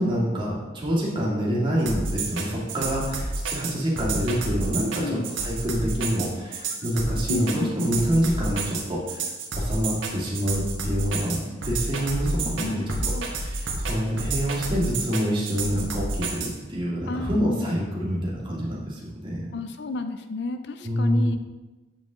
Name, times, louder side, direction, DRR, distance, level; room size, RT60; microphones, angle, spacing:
voice 1, 0.0-9.3 9.6-11.4 11.6-12.8 13.4-19.5 20.8-21.3, equal, 25° right, -6 dB, 2.4 m, -26 dB
sound 1, 1.9-16.5, right 3 dB, 90° right, 1.6 m, -29 dB
voice 2, 4.9-5.3 6.8-7.7 12.4-13.3 17.1-17.7 19.5-21.4, left 3 dB, 60° left, 9 dB, 0.5 m, -31 dB
8.2 x 7.4 x 3.7 m, 1.2 s
head